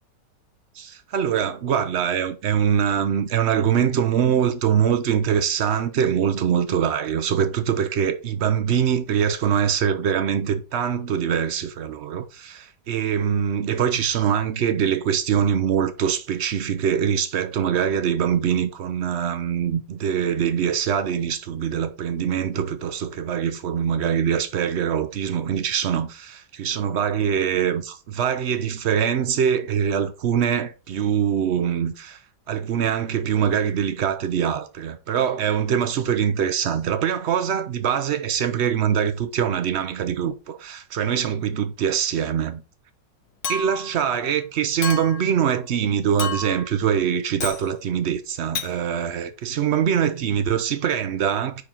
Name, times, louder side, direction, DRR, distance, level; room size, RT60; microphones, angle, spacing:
voice 1, 0.7-32.2 32.5-42.6 43.5-51.6, right 8 dB, 85° right, 0.5 m, -23 dB
Chink clink, 43.4-44.0 44.8-45.3 46.2-46.7 47.4-47.7 48.6-48.7, left 4 dB, 50° left, 1.0 m, -30 dB
9.7 x 3.8 x 4.4 m
omnidirectional pair, 1.9 m